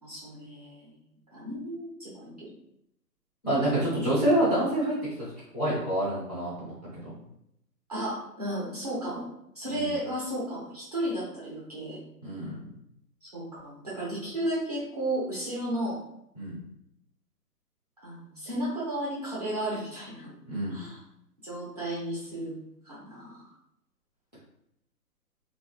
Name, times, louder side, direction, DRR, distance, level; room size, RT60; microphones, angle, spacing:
voice 1, 0.0-0.9 1.3-2.5 7.9-9.3 9.5-12.0 13.2-16.0 18.0-20.3 20.7-21.0 21.4-22.5 22.8-23.5, right 1 dB, 25° right, -7 dB, 0.6 m, -34 dB
voice 2, 3.4-5.3 5.5-6.7 7.0-7.1 9.7-9.9 12.2-12.6 16.4-16.6 20.5-20.8, right 1 dB, 25° left, -11 dB, 0.5 m, -27 dB
2.5 x 2.3 x 2.3 m, 0.78 s
hypercardioid pair, 150°, 49 cm